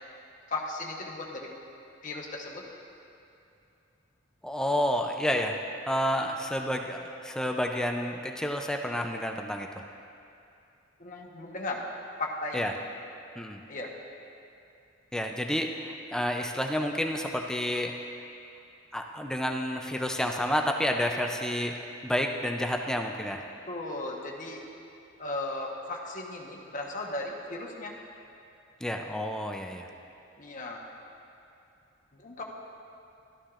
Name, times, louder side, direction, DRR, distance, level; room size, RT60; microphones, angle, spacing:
voice 1, 0.5-1.5 2.0-2.7 11.0-11.8 12.2-12.7 13.7-13.9 23.7-24.6 25.2-27.9 30.4-30.8 32.1-32.4, left 2 dB, 40° left, -1 dB, 1.1 m, -36 dB
voice 2, 4.4-5.5 5.9-9.7 12.5-12.7 13.4-13.6 15.1-17.9 18.9-21.8 22.0-23.4 28.8-29.9, equal, 5° left, 3 dB, 0.4 m, -30 dB
13.0 x 11.5 x 2.5 m, 2.7 s
head